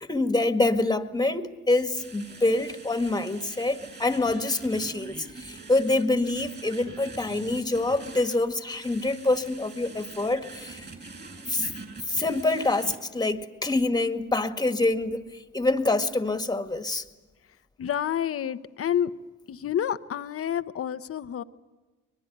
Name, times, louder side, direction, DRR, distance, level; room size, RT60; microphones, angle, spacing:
voice 1, 0.0-10.8 11.5-11.7 12.1-17.0, left 2 dB, 15° left, 8 dB, 1.8 m, -26 dB
sound 1, 2.0-13.0, right 3 dB, 35° right, 5.7 m, -44 dB
voice 2, 17.8-19.1 19.5-21.4, left 9 dB, 50° left, 12 dB, 0.9 m, -29 dB
24.0 x 21.0 x 9.3 m, 1.2 s
cardioid pair, 90°, 30 cm